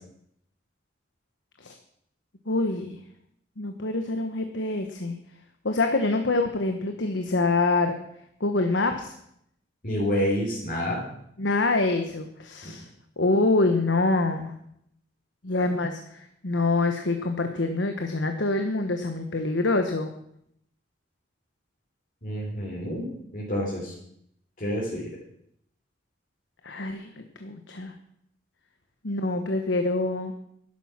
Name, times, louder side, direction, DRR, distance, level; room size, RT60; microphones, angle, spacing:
voice 1, 2.5-3.0 3.6-5.2 5.6-8.0 8.4-9.1 11.4-12.9 13.2-14.5 15.4-20.1 26.6-27.9 29.0-30.3, left 2 dB, 85° left, 6 dB, 1.2 m, -25 dB
voice 2, 9.8-11.0 22.2-23.9 24.6-25.1, equal, 45° left, -5 dB, 3.7 m, -28 dB
12.5 x 11.5 x 6.0 m, 0.72 s
head